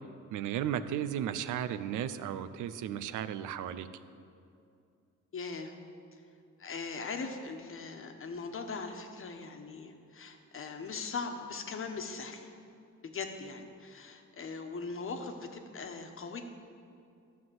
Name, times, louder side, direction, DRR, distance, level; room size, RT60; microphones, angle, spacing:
voice 1, 0.3-3.9, right 10 dB, 80° right, 12 dB, 0.6 m, -34 dB
voice 2, 5.3-5.7 6.1-6.2 6.6-12.5 13.0-16.4, left 4 dB, 45° left, 5 dB, 1.2 m, -40 dB
12.5 x 5.8 x 7.7 m, 2.4 s
cardioid pair, 90°, 30 cm